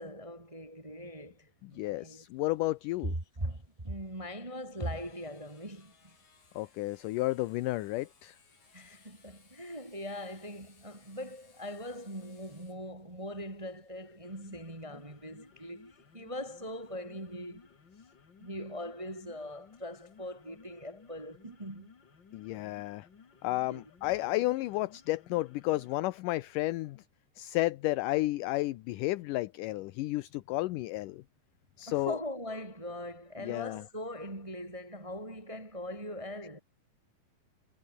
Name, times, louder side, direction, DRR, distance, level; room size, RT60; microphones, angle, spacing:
voice 1, 0.0-2.2 3.4-6.4 8.7-17.7 18.4-21.9 23.5-23.8 24.1-24.3 31.8-36.6, equal, 10° right, 1.9 m, -41 dB
voice 2, 1.6-3.2 6.6-8.4 22.3-23.1 23.4-27.0 27.4-31.2 31.8-32.2 33.4-33.8, left 18 dB, 75° left, 2.2 m, -32 dB
Sawing, 1.7-17.1, left 5 dB, 55° left, 6.6 m, -66 dB
sound 1, 14.1-26.1, left 6 dB, 35° left, 2.5 m, -59 dB
omnidirectional pair, 4.1 m